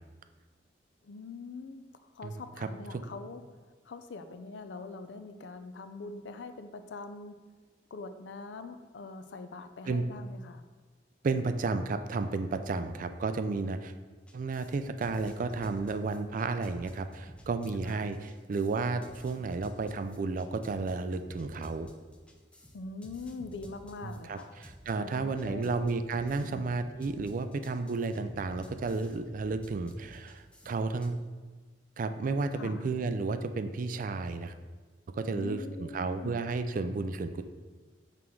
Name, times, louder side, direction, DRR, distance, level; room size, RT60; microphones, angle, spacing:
voice 1, 1.0-1.8 2.1-3.4 3.9-7.3 7.9-10.6 17.9-18.0 22.7-24.5 24.9-25.8 26.4-26.8 32.6-32.8 35.3-36.4, left 3 dB, 90° left, 9 dB, 0.5 m, -43 dB
voice 2, 2.2-2.7 2.9-3.0 9.9-10.0 11.2-13.9 14.3-21.9 24.0-31.2 32.0-34.5 35.1-37.4, right 3 dB, 50° right, 10 dB, 0.4 m, -32 dB
sound 1, 14.3-31.1, equal, 5° left, 0.5 m, -52 dB
6.0 x 4.5 x 3.7 m, 1.4 s
head